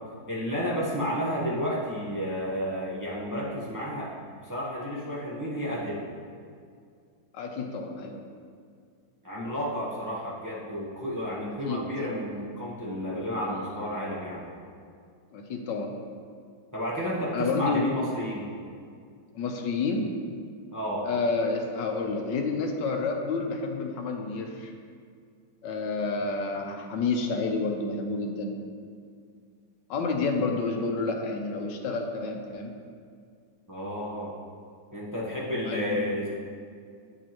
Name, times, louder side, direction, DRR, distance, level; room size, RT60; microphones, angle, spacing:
voice 1, 0.3-6.0 9.2-14.5 16.7-18.5 20.7-21.1 33.7-34.3 34.9-36.3, equal, 20° right, -7 dB, 0.5 m, -31 dB
voice 2, 7.3-8.2 11.7-11.8 15.3-15.9 17.3-18.0 19.3-20.1 21.0-24.7 25.6-28.6 29.9-32.7 35.7-36.1, left 4 dB, 80° left, 3 dB, 1.4 m, -29 dB
8.6 x 5.3 x 2.9 m, 2.2 s
omnidirectional pair, 2.0 m